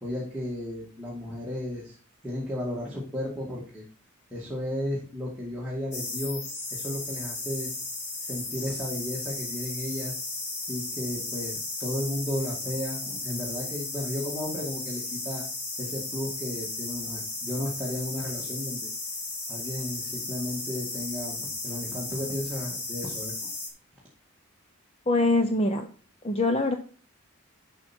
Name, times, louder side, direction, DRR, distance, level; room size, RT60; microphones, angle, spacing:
voice 1, 0.0-1.9 2.2-3.8 4.3-6.4 6.7-7.7 8.3-10.1 10.7-15.4 15.8-18.9 19.5-23.3, left 1 dB, 5° right, -6 dB, 2.0 m, -34 dB
sound 1, 5.9-23.7, left 3 dB, 50° left, 2.9 m, -35 dB
voice 2, 25.1-25.9 26.2-26.8, left 2 dB, 25° left, 6 dB, 0.6 m, -23 dB
11.0 x 5.9 x 4.4 m, 0.41 s
head